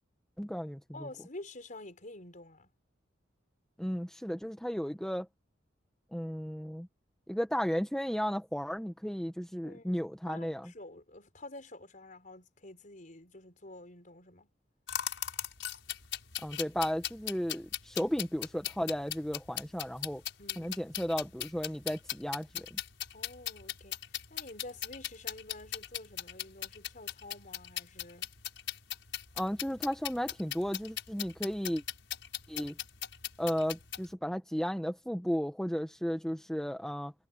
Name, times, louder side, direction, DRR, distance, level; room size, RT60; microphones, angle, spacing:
voice 1, 0.4-0.8 3.8-5.3 6.1-6.9 7.3-10.7 16.4-20.2 20.6-22.8 29.4-31.8 32.5-32.7 33.4-37.1, equal, 5° left, 1.2 m, -34 dB
voice 2, 0.9-2.7 9.6-14.5 20.4-20.8 23.1-24.0 24.3-28.3, left 2 dB, 45° left, 5.1 m, -49 dB
sound 1, 14.9-34.1, left 12 dB, 80° left, 5.4 m, -39 dB
head